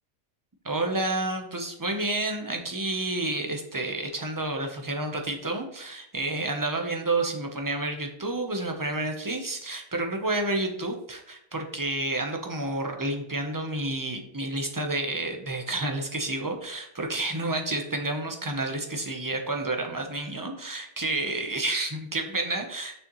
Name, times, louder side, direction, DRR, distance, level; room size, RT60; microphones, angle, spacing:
voice 1, 0.6-23.0, right 2 dB, 25° right, 3 dB, 0.5 m, -30 dB
6.7 x 6.4 x 3.1 m, 0.73 s
omnidirectional pair, 1.7 m